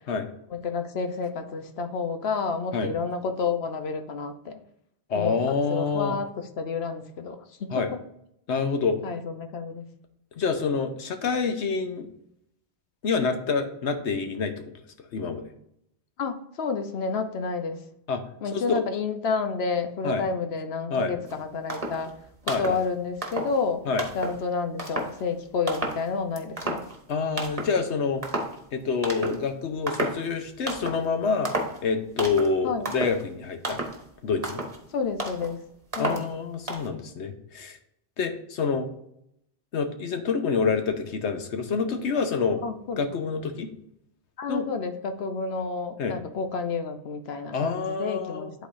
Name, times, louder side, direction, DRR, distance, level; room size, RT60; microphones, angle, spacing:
voice 1, 0.5-4.6 5.1-6.3 6.6-7.9 9.0-9.9 16.2-17.8 18.4-22.1 22.6-23.8 24.1-26.8 32.6-32.9 34.9-35.6 36.0-36.2 42.6-43.1 44.4-48.5, left 4 dB, 70° left, 7 dB, 1.0 m, -30 dB
voice 2, 5.1-6.2 7.7-7.9 8.5-9.0 10.4-12.1 13.0-14.7 15.0-15.4 18.1-18.2 18.5-18.8 20.0-20.2 20.9-21.1 22.5-22.8 23.8-24.1 27.1-28.2 28.7-31.5 31.8-33.8 34.2-34.6 36.0-37.8 38.2-38.9 39.7-42.6 43.0-43.7 44.5-44.7 46.0-46.1 47.5-48.5, left 5 dB, 90° left, 7 dB, 1.2 m, -27 dB
sound 1, 21.3-21.4 21.7-22.1 22.4-22.8 23.2-23.6 24.0-24.4 24.8-25.2 25.7-26.1 26.4-27.1 27.4-27.8 28.2-28.6 29.0-29.5 29.9-30.3 30.7-31.1 31.4-31.8 32.2-32.6 32.8-33.2 33.6-34.0 34.4-34.8 35.2-35.5 35.9-36.3 36.7-36.9, right 2 dB, 35° right, 1.2 m, -32 dB
11.5 x 4.0 x 2.6 m, 0.74 s
omnidirectional pair, 1.1 m